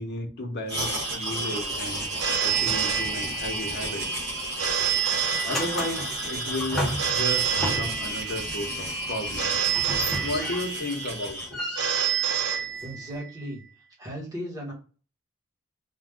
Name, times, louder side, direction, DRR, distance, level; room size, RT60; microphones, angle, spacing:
voice 1, 0.0-2.1 2.4-4.1 5.4-9.6 10.2-11.8, left 1 dB, 50° left, 2 dB, 0.7 m, -33 dB
sound 1, 0.7-11.5, right 1 dB, 50° right, 1.0 m, -32 dB
Telephone, 2.2-3.7 4.6-6.1 7.0-8.5 9.4-10.9 11.8-13.3, right 8 dB, 80° right, 0.6 m, -27 dB
sound 2, 4.4-4.7 5.0-8.1 9.7-10.9 11.2-13.2, equal, ahead, 0.6 m, -34 dB
voice 2, 12.8-13.6 14.0-14.7, equal, 15° right, -5 dB, 1.1 m, -36 dB
2.5 x 2.2 x 3.4 m, 0.37 s
head